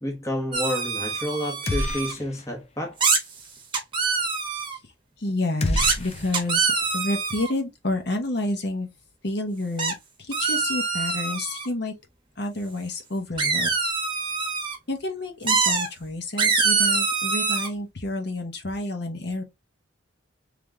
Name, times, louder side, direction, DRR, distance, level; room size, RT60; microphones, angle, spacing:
voice 1, 0.0-3.3, left 1 dB, 15° left, 0.9 m, -30 dB
sound 1, 0.5-2.1 3.0-3.2 3.7-4.8 5.8-6.0 6.3-7.5 9.8-9.9 10.3-11.7 13.4-14.8 15.5-15.9 16.4-17.7, right 4 dB, 25° right, 1.0 m, -24 dB
sound 2, 1.7-2.5 2.8-2.9 5.6-6.9, left 1 dB, 30° left, 0.5 m, -29 dB
voice 2, 5.2-8.9 9.2-11.9 12.4-13.7 14.9-19.4, left 2 dB, 55° left, 1.0 m, -29 dB
3.4 x 2.9 x 3.6 m
head